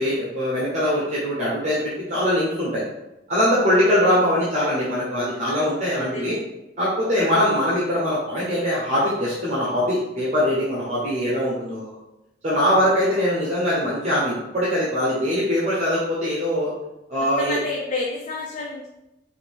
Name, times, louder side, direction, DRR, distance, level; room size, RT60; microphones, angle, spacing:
voice 1, 0.0-2.8 3.3-6.4 6.8-11.9 12.4-16.7 17.1-17.6, equal, 40° right, -7 dB, 1.0 m, -22 dB
voice 2, 3.6-4.1 5.5-6.4 7.2-7.4 12.8-13.1 17.2-18.9, left 2 dB, 45° left, -1 dB, 0.5 m, -31 dB
4.8 x 2.7 x 3.6 m, 0.95 s
head